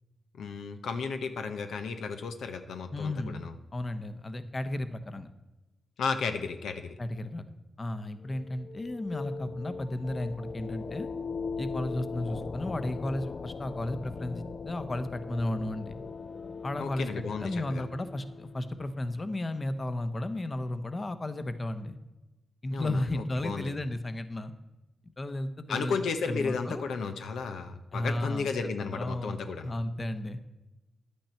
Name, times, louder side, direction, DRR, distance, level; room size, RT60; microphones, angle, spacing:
voice 1, 0.4-3.5 6.0-7.0 16.8-17.8 22.7-23.7 25.7-29.7, left 5 dB, 90° left, 7 dB, 0.8 m, -34 dB
voice 2, 2.9-5.3 7.0-7.4 7.8-11.1 11.6-16.0 16.6-22.0 22.6-24.5 25.2-26.0 26.3-26.8 27.9-30.4, left 1 dB, 35° left, 11 dB, 1.0 m, -34 dB
sound 1, 8.3-18.8, left 4 dB, 55° left, 0.4 m, -40 dB
10.5 x 8.6 x 4.4 m, 1.0 s
cardioid pair, 60°, 0 cm